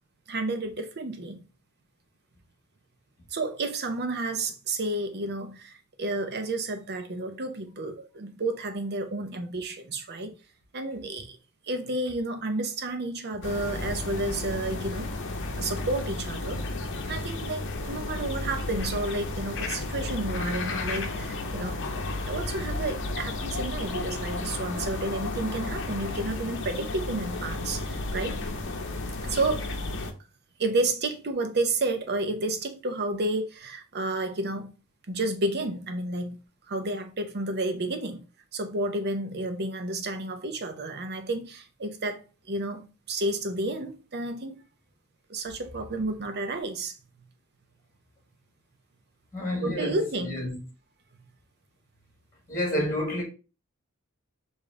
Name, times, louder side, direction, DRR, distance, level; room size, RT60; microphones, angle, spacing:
voice 1, 0.3-1.4 3.3-10.4 10.7-11.4 11.7-15.1 15.6-16.6 17.1-21.8 22.3-29.7 30.6-34.7 35.1-36.4 36.7-38.2 38.5-42.2 42.5-44.6 45.3-47.0 49.6-50.4, right 2 dB, 50° right, 0.8 m, -31 dB
sound 1, 13.4-30.1, left 2 dB, 60° left, 0.7 m, -33 dB
voice 2, 49.3-50.6 52.5-53.2, left 1 dB, 15° left, 1.7 m, -29 dB
5.0 x 2.7 x 3.7 m
head